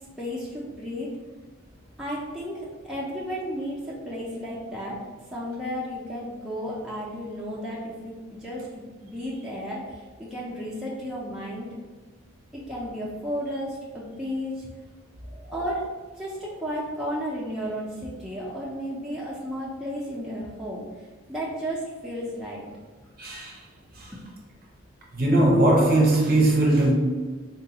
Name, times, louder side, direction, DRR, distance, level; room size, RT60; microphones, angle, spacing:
voice 1, 0.2-1.2 2.0-5.0 5.3-11.8 12.5-14.7 15.5-15.9 16.2-20.8 21.3-22.7, equal, ahead, -7 dB, 0.4 m, -33 dB
voice 2, 23.2-23.6 23.9-24.1 25.1-26.9, right 1 dB, 45° right, -2 dB, 0.7 m, -20 dB
3.8 x 2.2 x 2.7 m, 1.4 s
head